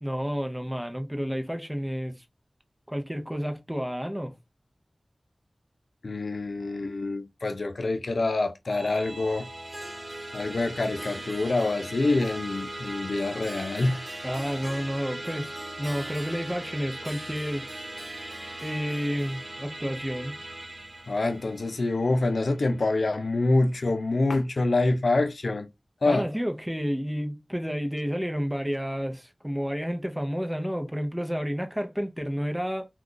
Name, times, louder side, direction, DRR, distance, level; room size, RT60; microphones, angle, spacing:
voice 1, 0.0-2.1 2.9-4.3 14.2-15.5 15.8-17.7 18.1-18.2 18.6-20.4 26.1-32.9, equal, 10° right, 0.6 m, -30 dB
voice 2, 6.0-9.5 10.3-14.0 21.1-25.7 26.0-26.3, left 2 dB, 85° left, 0.4 m, -26 dB
Musical instrument, 8.7-24.2, right 1 dB, 55° right, 0.9 m, -41 dB
Harp, 9.6-21.5, right 1 dB, 35° right, 1.1 m, -42 dB
2.4 x 2.3 x 3.8 m
wide cardioid pair, 65°, 0 cm